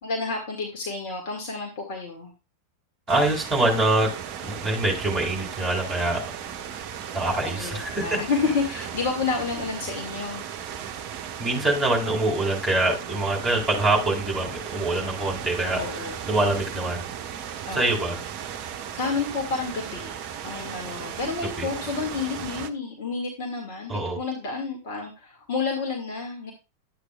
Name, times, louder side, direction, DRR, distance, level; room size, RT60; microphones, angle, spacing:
voice 1, 0.0-2.3 7.3-10.4 15.7-16.2 17.7-18.2 18.9-26.5, left 4 dB, 50° left, 2 dB, 1.9 m, -30 dB
voice 2, 3.1-6.2 7.1-8.2 11.4-17.1 17.7-18.2 21.6-21.7 23.9-24.2, right 2 dB, 5° right, 0 dB, 3.7 m, -25 dB
sound 1, 3.1-22.7, right 9 dB, 45° right, 0.8 m, -36 dB
11.0 x 8.2 x 2.3 m, 0.28 s
figure-of-eight pair, 90°, 0 cm